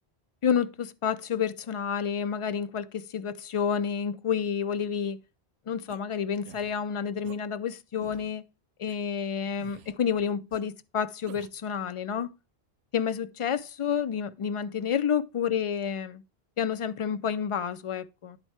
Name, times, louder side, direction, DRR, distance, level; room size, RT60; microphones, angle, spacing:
voice 1, 0.4-5.2 5.7-8.4 8.8-12.3 12.9-16.2 16.6-18.4, left 7 dB, 60° left, 0.3 m, -29 dB
sound 1, 5.9-6.0 6.5-6.7 7.2-7.4 8.0-8.3 8.9-9.0 9.6-10.0 10.5-10.6 11.3-11.6, right 10 dB, 85° right, 0.8 m, -48 dB
10.5 x 4.6 x 4.2 m
omnidirectional pair, 1.1 m